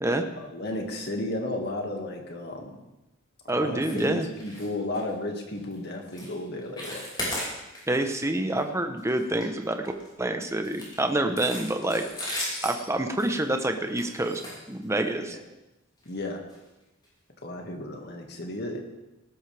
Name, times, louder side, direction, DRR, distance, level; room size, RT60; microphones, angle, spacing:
voice 1, 0.4-2.8 3.4-7.0 15.2-15.4 16.1-16.4 17.4-18.8, left 1 dB, 55° left, 2 dB, 2.1 m, -33 dB
voice 2, 3.5-4.3 7.9-9.9 10.2-12.1 12.6-14.4 14.7-15.4, right 1 dB, 15° right, 6 dB, 1.0 m, -27 dB
sound 1, 3.8-4.1 4.3-4.7 4.9-5.1 5.6-5.7 6.1-6.3 6.6-8.0 8.4-8.6 9.0-10.1 10.6-15.2 16.0-16.1 16.5-16.6 17.0-17.1, left 1 dB, 20° left, 5.6 m, -36 dB
19.0 x 12.5 x 3.5 m, 0.98 s
head